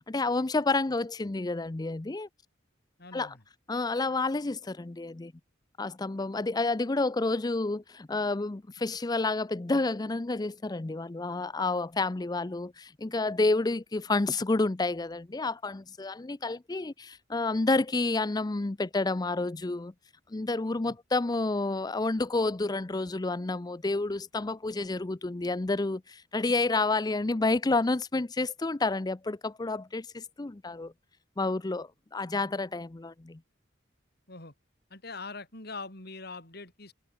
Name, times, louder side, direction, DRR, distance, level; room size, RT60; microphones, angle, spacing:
voice 1, 0.1-2.3 3.1-3.3 3.7-5.3 5.8-19.9 20.3-30.9 31.4-33.4, left 3 dB, 20° left, 0.5 m, -29 dB
voice 2, 3.0-3.4 20.8-21.0 34.3-34.5 34.9-36.9, left 3 dB, 55° left, 4.8 m, -43 dB
head